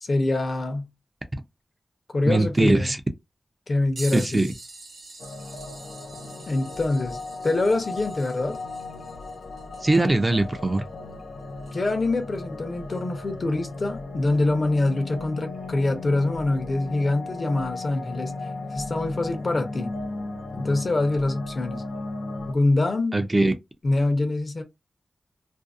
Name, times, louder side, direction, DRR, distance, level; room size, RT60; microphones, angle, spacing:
voice 1, 0.0-0.9 2.1-2.9 3.7-4.5 6.5-8.6 11.7-18.3 18.7-19.9 20.5-21.8 22.5-23.2 23.8-24.6, left 2 dB, 50° left, 0.7 m, -25 dB
voice 2, 2.3-3.0 4.1-4.5 9.8-10.8 23.1-23.5, right 2 dB, 25° right, 0.4 m, -21 dB
sound 1, 4.0-12.2 12.9-13.0 15.3-15.4 16.4-16.6 17.6-17.7, right 3 dB, 85° right, 0.9 m, -45 dB
sound 2, 5.2-22.5, left 3 dB, 90° left, 0.4 m, -36 dB
2.6 x 2.0 x 2.4 m
wide cardioid pair, 95°, 0 cm